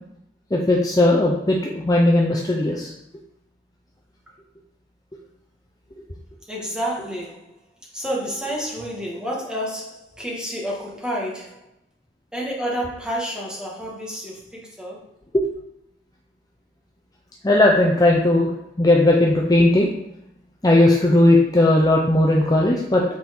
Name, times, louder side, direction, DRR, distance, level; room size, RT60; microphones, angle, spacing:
voice 1, 0.5-2.9 15.3-15.5 17.4-18.5 18.8-19.9 20.6-23.0, left 1 dB, 20° left, -1 dB, 0.7 m, -17 dB
voice 2, 6.5-7.5 7.9-11.7 12.3-15.0, equal, 5° right, -4 dB, 1.8 m, -29 dB
8.7 x 4.3 x 3.8 m, 0.80 s
head